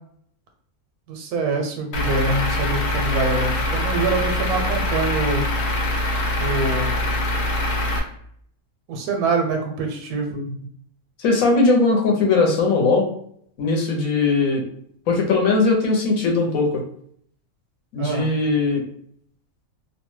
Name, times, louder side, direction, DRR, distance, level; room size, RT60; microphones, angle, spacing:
voice 1, 1.1-5.4 6.4-7.0 8.9-10.3 18.0-18.3, right 3 dB, 90° right, 4 dB, 1.1 m, -24 dB
Truck / Idling, 1.9-8.0, left 1 dB, 90° left, 1.1 m, -23 dB
voice 2, 11.2-13.1 13.6-14.6 15.1-16.7 17.9-18.8, left 3 dB, 70° left, 0 dB, 1.1 m, -19 dB
2.7 x 2.1 x 3.1 m, 0.65 s
omnidirectional pair, 1.6 m